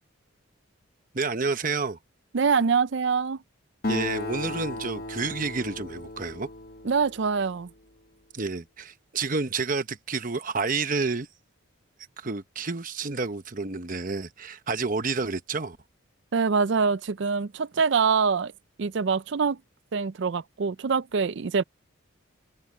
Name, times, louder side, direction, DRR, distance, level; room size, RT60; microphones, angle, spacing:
voice 1, 1.1-2.0 3.9-6.5 8.3-11.3 12.2-15.8, right 4 dB, 40° right, 1.0 m, -29 dB
voice 2, 2.3-3.4 6.8-7.7 16.3-18.5 18.8-19.6 19.9-21.6, right 5 dB, 55° right, 0.4 m, -24 dB
Acoustic guitar, 3.8-7.6, left 2 dB, 50° left, 1.2 m, -35 dB
head